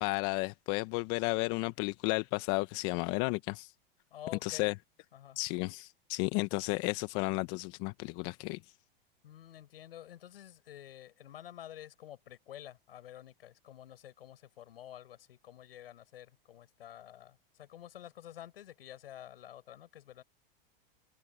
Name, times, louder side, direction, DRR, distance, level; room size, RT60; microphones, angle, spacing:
voice 1, 0.0-3.7 4.4-4.7 5.4-8.6, left 25 dB, 50° left, 1.0 m, -33 dB
voice 2, 4.1-4.7 5.1-5.4 9.2-20.2, left 11 dB, 80° left, 7.7 m, -50 dB
open air
hypercardioid pair, 110°, 29 cm